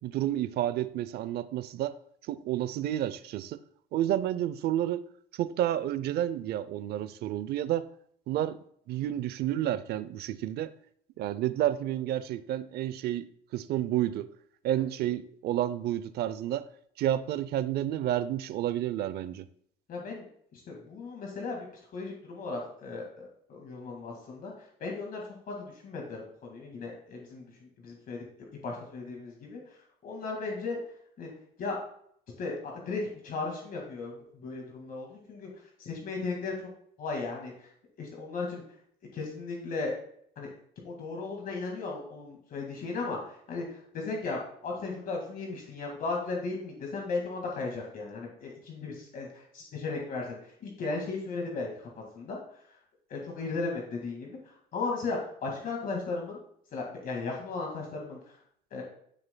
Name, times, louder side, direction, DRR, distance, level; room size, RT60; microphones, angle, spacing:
voice 1, 0.0-1.9 2.3-3.6 3.9-5.0 5.3-7.9 8.3-8.6 8.9-10.7 11.2-13.3 13.5-14.3 14.6-16.7 17.0-19.5, right 12 dB, 70° right, 15 dB, 0.6 m, -30 dB
voice 2, 19.9-20.2 20.5-21.7 21.9-24.5 24.8-28.3 28.6-29.6 30.0-30.8 31.2-31.3 31.6-31.8 32.4-35.5 35.8-36.5 37.0-37.5 38.0-38.6 39.1-39.9 40.4-40.5 40.8-51.7 52.1-52.4 53.1-54.4 54.7-56.4 56.7-58.2 58.7-58.8, left 3 dB, 55° left, 0 dB, 2.0 m, -36 dB
13.0 x 6.7 x 2.2 m, 0.66 s
cardioid pair, 110°, 17 cm